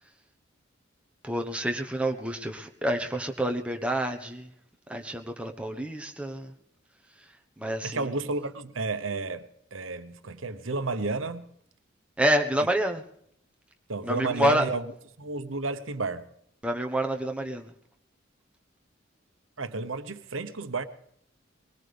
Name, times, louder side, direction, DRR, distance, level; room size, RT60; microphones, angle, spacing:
voice 1, 1.2-4.5 4.9-6.5 7.6-8.1 12.2-13.0 14.0-14.7 16.6-17.7, right 1 dB, 5° right, 1.2 m, -28 dB
voice 2, 7.8-11.5 13.9-14.8 15.2-16.3 19.6-20.8, right 3 dB, 85° right, 1.0 m, -32 dB
21.5 x 19.5 x 3.5 m
head